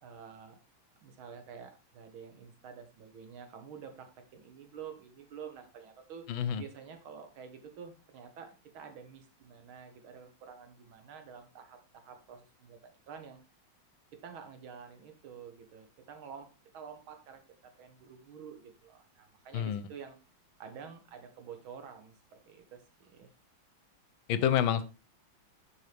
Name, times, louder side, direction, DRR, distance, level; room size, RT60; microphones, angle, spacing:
voice 1, 0.0-0.6 1.0-6.3 6.6-13.4 14.2-20.2 20.6-23.3, right 7 dB, 85° right, 7 dB, 2.0 m, -49 dB
voice 2, 6.3-6.6 19.5-19.8 24.3-24.8, left 9 dB, 80° left, 13 dB, 1.5 m, -28 dB
9.8 x 4.5 x 3.3 m, 0.31 s
omnidirectional pair, 2.2 m